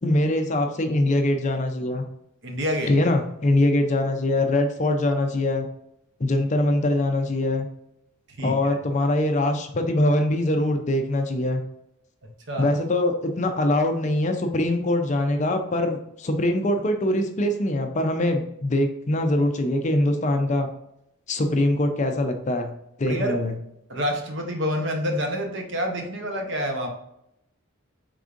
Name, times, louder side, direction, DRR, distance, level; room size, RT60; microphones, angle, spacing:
voice 1, 0.0-2.0 2.9-5.7 6.2-7.7 8.4-11.6 12.6-20.7 21.3-22.7 23.0-23.5, left 1 dB, 35° left, 5 dB, 0.5 m, -23 dB
voice 2, 2.4-2.9 8.4-8.6 12.5-12.7 23.1-23.4 23.9-26.9, equal, 55° right, 3 dB, 0.8 m, -27 dB
4.8 x 3.6 x 2.5 m, 0.80 s
head